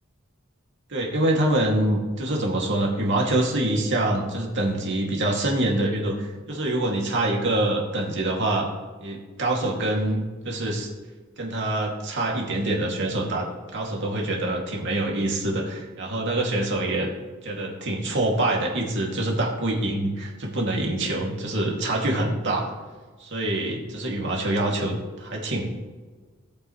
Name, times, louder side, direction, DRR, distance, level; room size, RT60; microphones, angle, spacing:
voice 1, 0.9-8.7 9.0-10.9 11.4-13.5 13.7-17.1 17.4-22.7 23.2-25.7, right 1 dB, 60° right, -1 dB, 2.5 m, -25 dB
18.5 x 9.0 x 3.2 m, 1.4 s
head